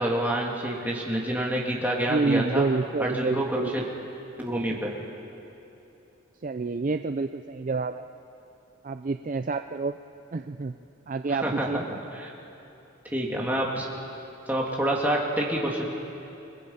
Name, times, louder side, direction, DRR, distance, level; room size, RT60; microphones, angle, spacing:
voice 1, 0.0-2.6 3.0-3.8 4.4-4.9 11.3-11.8 12.1-12.3 13.0-13.9 14.5-15.9, right 1 dB, 10° right, -3 dB, 2.6 m, -27 dB
voice 2, 2.1-3.9 6.4-8.0 8.8-10.0 10.3-10.8 11.1-11.8, right 3 dB, 40° right, 9 dB, 0.4 m, -28 dB
29.5 x 20.5 x 5.7 m, 2.9 s
head